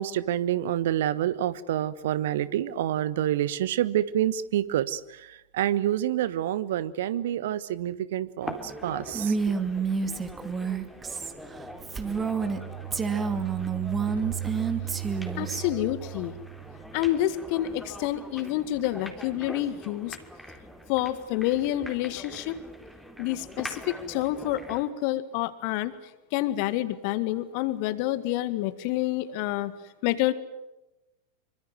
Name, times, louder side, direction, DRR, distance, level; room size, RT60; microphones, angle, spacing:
voice 1, 0.0-5.0 5.3-9.4, right 11 dB, 55° right, 17 dB, 1.2 m, -27 dB
sound 1, 8.4-24.9, equal, ahead, 3.5 m, -43 dB
Female speech woman speaking, 9.1-12.6 12.9-15.6, right 5 dB, 15° right, 2.5 m, -29 dB
sound 2, 11.5-17.2, right 15 dB, 85° right, 7.5 m, -37 dB
voice 2, 15.4-16.3 16.9-20.2 20.9-22.6 23.2-25.9 26.3-29.7 30.0-30.3, left 14 dB, 45° left, 14 dB, 1.9 m, -28 dB
26.5 x 24.5 x 7.7 m, 0.96 s
figure-of-eight pair, 90°, 0 cm